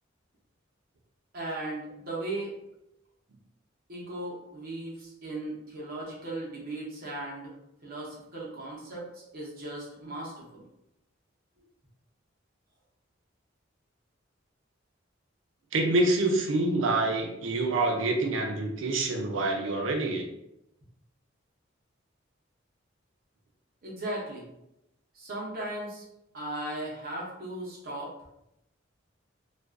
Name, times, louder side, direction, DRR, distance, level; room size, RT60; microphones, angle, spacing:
voice 1, 1.3-2.5 3.9-7.5 7.8-10.6 23.8-24.5 25.1-26.0 26.3-28.1, right 1 dB, 50° right, -3 dB, 0.7 m, -37 dB
voice 2, 15.7-20.2, right 2 dB, 85° right, 2 dB, 0.5 m, -26 dB
2.4 x 2.2 x 2.4 m, 0.85 s
head